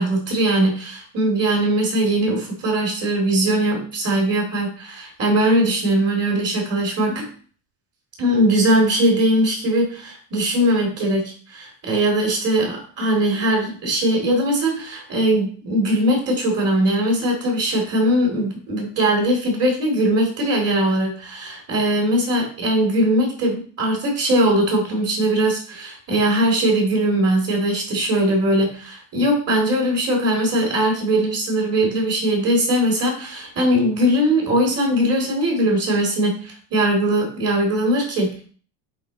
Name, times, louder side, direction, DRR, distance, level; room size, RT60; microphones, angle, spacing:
voice 1, 0.0-7.3 8.2-38.4, right 1 dB, 30° right, 0 dB, 2.6 m, -20 dB
8.6 x 3.9 x 4.0 m, 0.43 s
cardioid pair, 180°, 46 cm